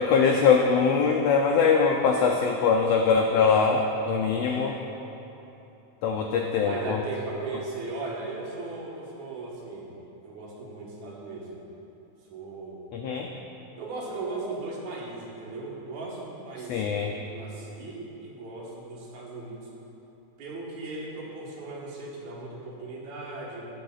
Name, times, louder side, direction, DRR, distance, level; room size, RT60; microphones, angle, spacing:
voice 1, 0.0-4.8 6.0-7.0 12.9-13.3 16.7-17.1, left 5 dB, 90° left, 1 dB, 1.4 m, -22 dB
voice 2, 6.6-10.0 10.2-11.6 12.3-12.8 13.8-16.9 17.2-19.7 20.4-23.7, right 3 dB, 70° right, -4 dB, 2.7 m, -37 dB
19.0 x 7.6 x 2.4 m, 3.0 s
omnidirectional pair, 3.6 m